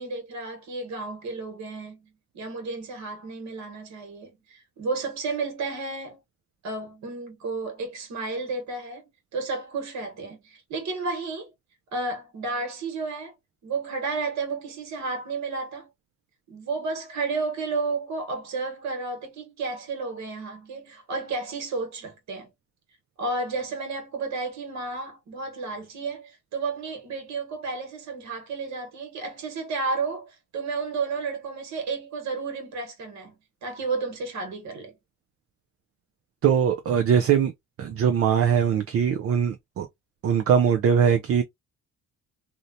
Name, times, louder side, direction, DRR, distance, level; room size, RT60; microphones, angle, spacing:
voice 1, 0.0-6.2 6.6-9.0 9.3-11.5 11.9-13.3 13.6-15.9 16.5-22.5 23.2-33.3 33.6-34.9, right 3 dB, 65° right, 1.2 m, -32 dB
voice 2, 36.4-37.5 37.8-39.9 40.2-41.4, right 7 dB, 50° right, 0.5 m, -21 dB
2.7 x 2.1 x 2.6 m
cardioid pair, 90°, 30 cm